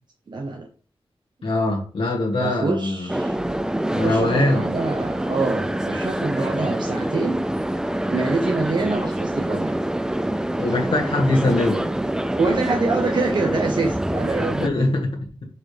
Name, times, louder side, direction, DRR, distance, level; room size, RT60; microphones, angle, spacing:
voice 1, 0.3-0.7 2.4-3.4 3.8-7.4 8.1-9.7 12.4-15.0, right 3 dB, 50° right, 2 dB, 0.9 m, -25 dB
voice 2, 1.4-3.1 3.9-4.7 10.6-11.8 14.6-15.1, left 2 dB, 65° left, -1 dB, 1.7 m, -22 dB
sound 1, 3.1-14.7, right 1 dB, 5° right, 0.4 m, -26 dB
7.4 x 6.0 x 3.4 m, 0.40 s
wide cardioid pair, 130°, 10 cm